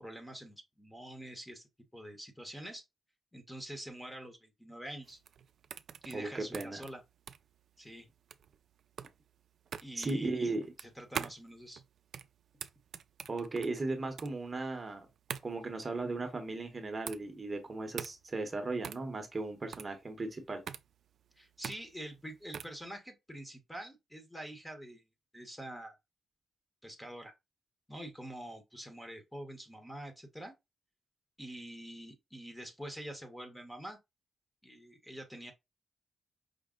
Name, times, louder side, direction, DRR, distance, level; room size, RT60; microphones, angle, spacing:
voice 1, 0.0-2.8 3.3-5.2 6.0-7.0 7.8-8.1 9.8-10.5 10.8-11.8 21.4-25.0 25.3-25.9 26.8-27.3 27.9-30.5 31.4-34.0 34.6-35.5, right 1 dB, 5° left, 0.8 m, -46 dB
sound 1, 5.0-22.8, right 8 dB, 65° right, 0.3 m, -45 dB
voice 2, 6.1-6.8 10.0-10.6 13.3-15.1 15.4-20.6, right 3 dB, 25° right, 0.8 m, -36 dB
5.0 x 2.0 x 3.6 m
wide cardioid pair, 140°, 0 cm